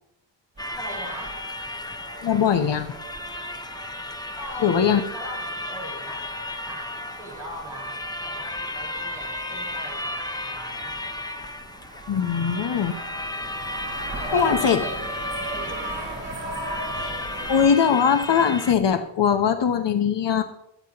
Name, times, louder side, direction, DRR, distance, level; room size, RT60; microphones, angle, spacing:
sound 1, 0.6-18.8, left 1 dB, 10° left, 0.6 m, -34 dB
sound 2, 0.6-17.6, right 2 dB, 25° right, 3.8 m, -39 dB
voice 1, 0.7-1.4 4.4-6.3 6.6-11.1 14.1-16.5, right 1 dB, 5° right, -5 dB, 4.7 m, -40 dB
voice 2, 2.2-2.9 4.6-5.0 12.1-12.9 14.3-14.8 17.5-20.4, left 7 dB, 75° left, 8 dB, 0.9 m, -21 dB
21.5 x 9.1 x 2.9 m, 0.78 s
wide cardioid pair, 165°, 43 cm